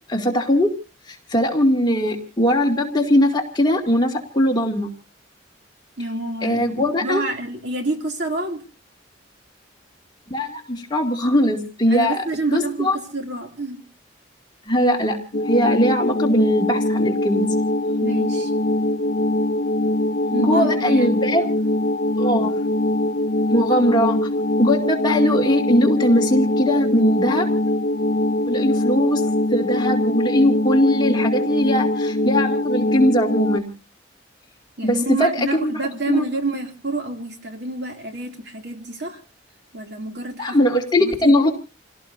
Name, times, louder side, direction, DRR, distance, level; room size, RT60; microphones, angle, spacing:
voice 1, 0.1-0.7 1.1-4.9 6.4-7.2 10.3-12.2 12.5-13.0 14.7-15.2 15.5-17.4 20.4-21.4 22.2-22.6 23.5-24.3 24.6-27.5 28.5-29.2 29.5-33.7 34.8-35.3 35.6-35.7 36.1-36.2 40.4-41.5, equal, 20° left, 1 dB, 2.4 m, -20 dB
voice 2, 6.0-8.6 11.9-13.8 18.0-18.5 20.3-21.5 34.8-39.2 39.7-40.7 41.0-41.3, right 2 dB, 55° right, 3 dB, 2.8 m, -28 dB
sound 1, 15.3-33.6, left 1 dB, 45° left, 0.8 m, -22 dB
28.5 x 17.5 x 2.7 m, 0.33 s
head